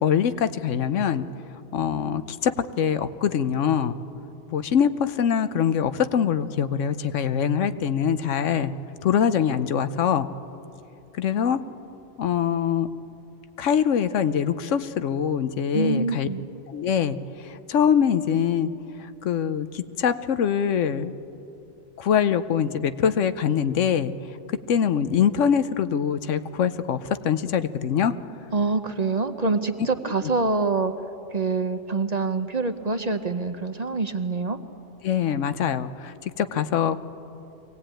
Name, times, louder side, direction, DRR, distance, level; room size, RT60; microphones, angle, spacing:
voice 1, 0.0-1.3 1.7-4.0 4.5-8.7 9.0-10.3 11.2-11.6 12.2-12.9 13.6-16.3 16.7-17.2 17.5-18.7 19.2-21.1 22.0-24.1 24.7-27.0 27.2-28.1 35.0-37.0, left 8 dB, 80° left, 12 dB, 1.1 m, -23 dB
voice 2, 15.7-16.5 28.5-30.9 31.3-34.6, right 3 dB, 40° right, 8 dB, 0.8 m, -25 dB
23.0 x 17.5 x 9.0 m, 2.9 s
omnidirectional pair, 1.2 m